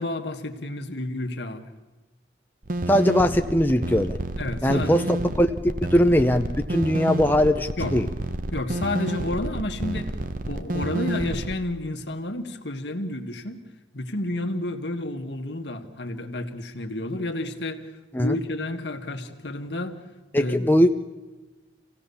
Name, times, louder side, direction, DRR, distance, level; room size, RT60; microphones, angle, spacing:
voice 1, 0.0-1.7 4.4-5.1 7.8-8.0 8.5-10.2 10.5-13.6 13.9-17.9 18.2-20.0 20.3-20.9, left 1 dB, 70° left, 5 dB, 1.8 m, -31 dB
sound 1, 2.6-11.5, right 1 dB, 50° right, 0.9 m, -30 dB
voice 2, 2.9-4.2 4.6-8.1 18.1-18.3 20.3-20.9, equal, 10° left, 5 dB, 0.7 m, -21 dB
26.5 x 17.0 x 7.0 m, 1.2 s
head